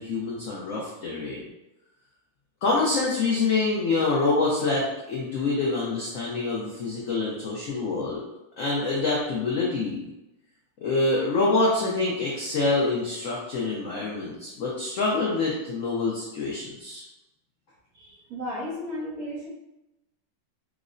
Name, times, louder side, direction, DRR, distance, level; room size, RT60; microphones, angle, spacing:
voice 1, 0.0-1.4 2.6-8.2 8.6-10.0 10.8-17.0, left 3 dB, 75° left, -4 dB, 0.7 m, -26 dB
voice 2, 17.9-19.5, left 1 dB, 60° right, -5 dB, 1.2 m, -34 dB
4.5 x 2.0 x 2.5 m, 0.95 s
omnidirectional pair, 2.0 m